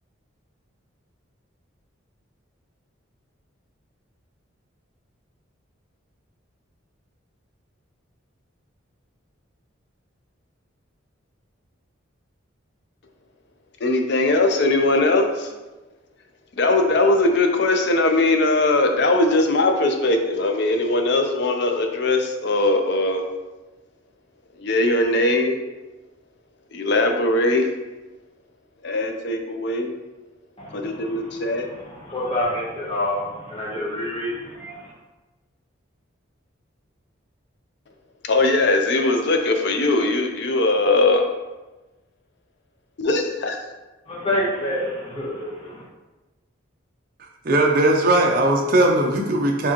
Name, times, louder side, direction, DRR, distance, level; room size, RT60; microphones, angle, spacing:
voice 1, 13.8-15.5 16.6-23.2 24.6-25.6 26.7-27.6 28.8-29.9 30.7-31.7 38.3-41.2 43.0-43.6, left 2 dB, 55° left, 4 dB, 0.5 m, -20 dB
voice 2, 30.6-34.9 44.1-45.8, left 1 dB, 25° left, -6 dB, 1.0 m, -28 dB
voice 3, 47.4-49.7, right 1 dB, 45° right, 1 dB, 0.5 m, -18 dB
4.7 x 3.6 x 2.9 m, 1.1 s
head